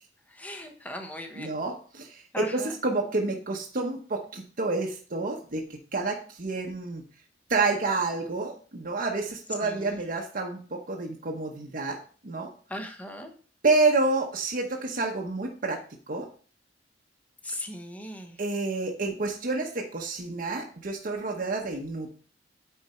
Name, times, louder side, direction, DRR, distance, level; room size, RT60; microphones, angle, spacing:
voice 1, 0.3-1.5 2.3-2.8 9.6-10.0 12.7-13.3 17.4-18.4, left 1 dB, 10° left, 4 dB, 1.0 m, -38 dB
voice 2, 1.4-7.1 7.5-12.0 12.2-12.5 13.6-15.8 16.1-16.3 18.4-22.1, right 3 dB, 50° right, 1 dB, 1.0 m, -29 dB
9.2 x 4.3 x 4.4 m, 0.42 s
head